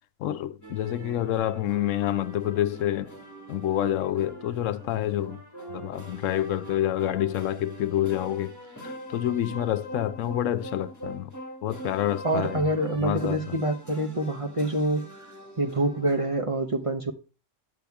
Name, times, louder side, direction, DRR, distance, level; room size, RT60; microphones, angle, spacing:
voice 1, 0.2-3.1 3.5-5.4 5.7-8.6 8.8-11.3 11.6-12.7 13.0-13.6, left 12 dB, 85° left, 1.0 m, -28 dB
sound 1, 0.6-16.4, right 1 dB, 15° left, 2.2 m, -43 dB
voice 2, 12.2-15.3 15.6-17.1, right 1 dB, 30° right, 1.0 m, -26 dB
10.0 x 7.1 x 3.5 m
omnidirectional pair, 1.3 m